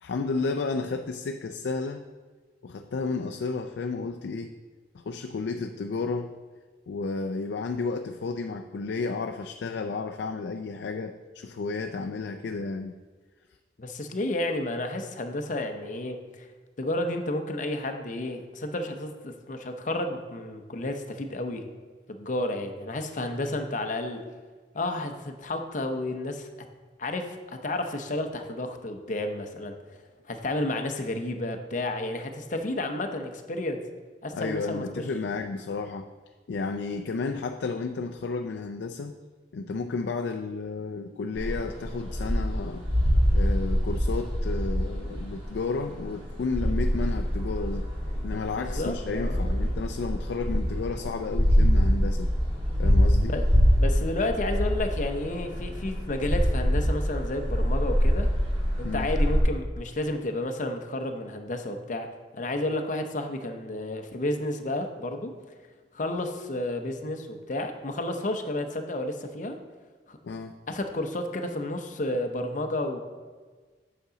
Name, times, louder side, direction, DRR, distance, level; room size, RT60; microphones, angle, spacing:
voice 1, 0.0-2.0 2.6-4.5 4.9-6.4 6.9-12.9 34.3-36.1 36.5-39.2 39.5-42.8 43.3-47.9 48.2-52.3 52.8-53.4 58.8-59.1 70.2-70.6, left 4 dB, 75° left, 6 dB, 0.4 m, -32 dB
voice 2, 13.8-16.5 16.8-21.7 22.1-24.2 24.7-26.5 27.0-29.8 30.3-33.8 34.2-35.0 48.5-49.5 53.3-53.4 53.8-58.3 58.8-62.1 62.3-65.3 65.9-69.6 70.1-70.2 70.7-73.0, left 1 dB, 45° left, 6 dB, 0.7 m, -31 dB
sound 1, 41.4-59.4, equal, 35° right, 2.0 m, -25 dB
8.2 x 6.0 x 3.9 m, 1.4 s
head